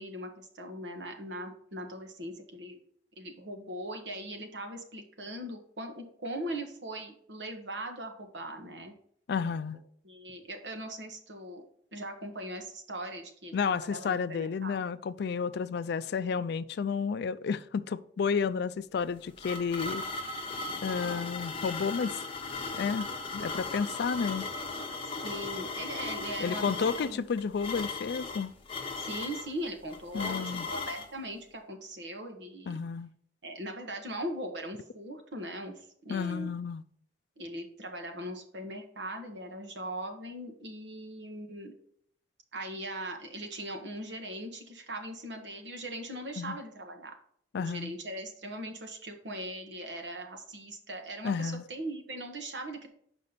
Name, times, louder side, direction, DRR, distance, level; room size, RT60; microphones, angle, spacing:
voice 1, 0.0-2.8 3.2-8.9 10.0-11.6 11.9-14.8 25.2-27.2 29.0-32.8 33.4-36.5 37.4-41.8 42.5-47.1 47.6-52.9, right 1 dB, 70° right, 1.4 m, -40 dB
voice 2, 9.3-9.8 13.5-20.0 20.8-22.2 22.8-23.1 23.3-24.5 26.4-28.5 30.1-30.7 32.7-33.1 36.1-36.8 46.4-46.6 47.5-47.9 51.2-51.6, left 6 dB, 65° left, 0.4 m, -31 dB
sound 1, 18.9-31.1, left 3 dB, 30° left, 0.9 m, -37 dB
6.8 x 5.2 x 4.1 m
head